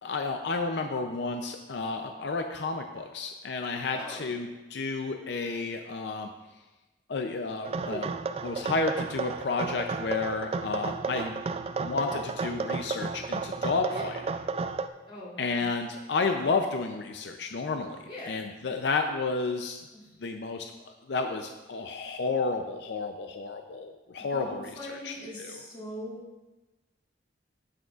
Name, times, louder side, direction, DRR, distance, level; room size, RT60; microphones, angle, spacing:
voice 1, 0.0-6.3 7.1-8.1 8.4-11.4 11.8-14.2 15.4-18.0 18.3-19.8 20.2-25.6, left 4 dB, 70° left, 5 dB, 0.5 m, -31 dB
voice 2, 3.9-4.3 13.9-14.1 15.1-15.7 18.1-18.4 24.3-26.2, left 1 dB, 30° left, -6 dB, 2.8 m, -41 dB
sound 1, 7.6-14.9, right 4 dB, 35° right, 0.3 m, -33 dB
16.0 x 6.3 x 2.4 m, 1.1 s
head